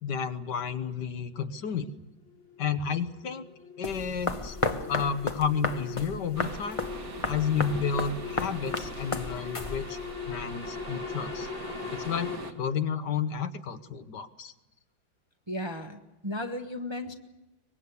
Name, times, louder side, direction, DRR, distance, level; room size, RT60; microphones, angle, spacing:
voice 1, 0.0-1.9 2.6-3.4 3.8-4.6 4.9-6.8 7.3-11.5 11.9-12.3 12.6-14.5, left 6 dB, 65° left, 10 dB, 1.6 m, -31 dB
sound 1, 1.8-12.4, left 6 dB, 90° left, 3.2 m, -41 dB
sound 2, 3.8-10.1, left 3 dB, 20° left, 0.9 m, -34 dB
sound 3, 6.4-12.5, right 2 dB, 50° right, 2.1 m, -42 dB
voice 2, 15.5-17.1, left 1 dB, 15° right, 5 dB, 1.0 m, -35 dB
24.0 x 21.0 x 8.3 m, 1.0 s
omnidirectional pair, 2.0 m